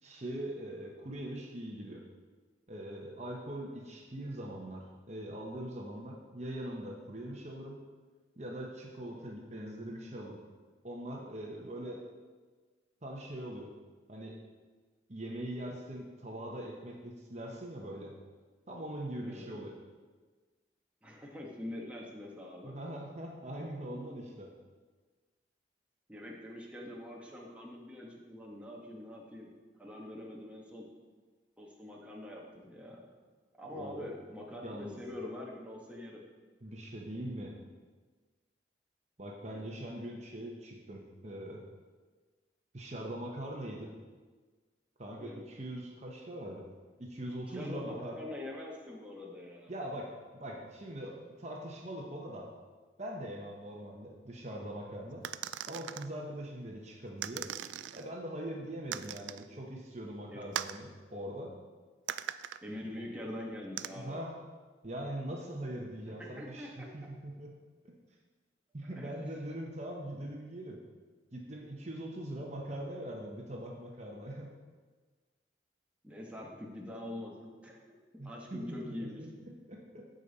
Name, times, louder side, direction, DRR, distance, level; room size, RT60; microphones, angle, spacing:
voice 1, 0.0-2.0 2.7-7.8 8.4-10.4 10.8-12.0 13.0-13.7 14.1-14.4 15.1-18.1 18.7-19.8 22.6-24.5 33.7-34.2 34.6-35.0 36.6-37.5 39.2-41.6 42.7-43.9 45.0-46.6 47.0-48.2 49.7-50.1 50.3-52.5 53.0-55.2 55.6-57.5 57.9-61.5 63.9-64.3 64.8-67.5 68.7-70.8 71.3-74.5 78.2-79.3 79.7-79.8, right 1 dB, 40° right, -1 dB, 1.0 m, -42 dB
voice 2, 9.0-9.3 19.2-19.5 21.0-22.7 26.1-29.5 29.8-30.8 31.6-33.1 33.6-36.2 39.5-39.6 45.2-45.4 47.5-49.7 60.3-60.4 62.6-64.2 66.2-66.9 68.9-69.2 76.0-78.0 78.2-79.3, left 1 dB, 5° right, -3 dB, 1.3 m, -44 dB
sound 1, 55.2-56.1 57.2-58.0 58.9-59.5 60.5-60.8 62.1-62.6 63.8-63.9, right 10 dB, 85° right, 0.3 m, -39 dB
15.5 x 5.2 x 4.1 m, 1.4 s
head